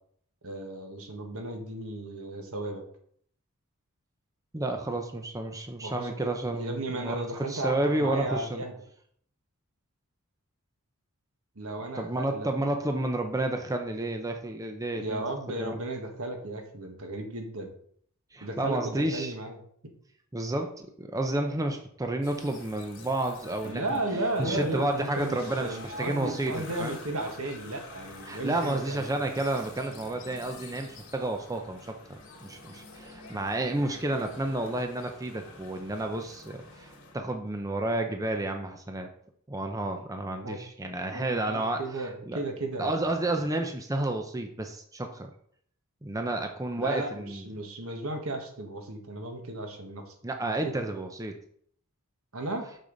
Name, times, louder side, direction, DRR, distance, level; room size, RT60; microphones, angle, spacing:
voice 1, 0.4-2.8 5.8-8.7 11.5-12.5 14.9-17.7 18.4-19.6 23.6-29.3 40.4-40.6 41.1-43.2 46.8-50.1 50.6-50.8 52.3-52.7, right 2 dB, 70° right, 4 dB, 1.4 m, -35 dB
voice 2, 4.5-8.6 11.9-15.2 15.6-15.8 18.3-19.3 20.3-24.0 24.4-26.9 28.3-39.1 39.5-42.4 42.8-45.3 46.0-47.5 50.2-51.3, right 1 dB, 15° right, 5 dB, 0.6 m, -31 dB
sound 1, 22.2-37.2, left 2 dB, 65° left, 2.5 m, -47 dB
6.7 x 6.7 x 3.9 m, 0.62 s
head